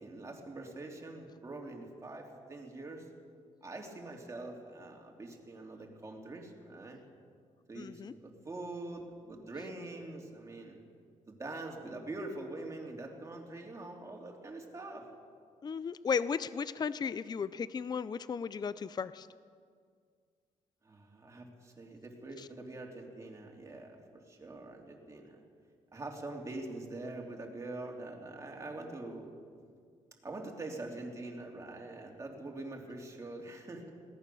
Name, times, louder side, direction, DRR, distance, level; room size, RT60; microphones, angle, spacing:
voice 1, 0.0-3.1 3.6-7.0 7.7-10.8 11.3-15.1 20.8-25.4 25.9-29.3 30.2-33.9, right 2 dB, 20° right, 0 dB, 3.2 m, -44 dB
voice 2, 7.8-8.1 15.6-19.3, left 6 dB, 30° left, 15 dB, 0.5 m, -35 dB
21.5 x 17.5 x 7.0 m, 2.1 s
cardioid pair, 125°, 13 cm